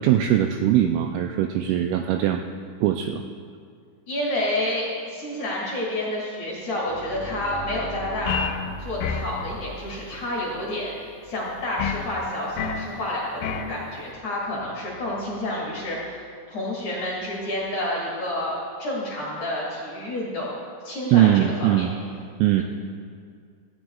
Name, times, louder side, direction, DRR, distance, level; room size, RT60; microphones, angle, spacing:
voice 1, 0.0-2.4 2.8-3.2 21.1-22.0 22.4-22.6, right 12 dB, 85° right, 4 dB, 2.8 m, -20 dB
voice 2, 4.1-8.5 8.8-16.2 16.5-20.5 20.8-21.9 22.6-22.7, left 1 dB, 45° left, -5 dB, 2.8 m, -29 dB
sound 1, 6.7-18.3, right 2 dB, 30° right, 3.4 m, -44 dB
sound 2, 8.3-8.6 9.0-9.4 11.8-12.1 12.6-12.9 13.4-13.7, left 7 dB, 80° left, 3.0 m, -28 dB
18.0 x 15.0 x 2.4 m, 2.2 s
omnidirectional pair, 6.0 m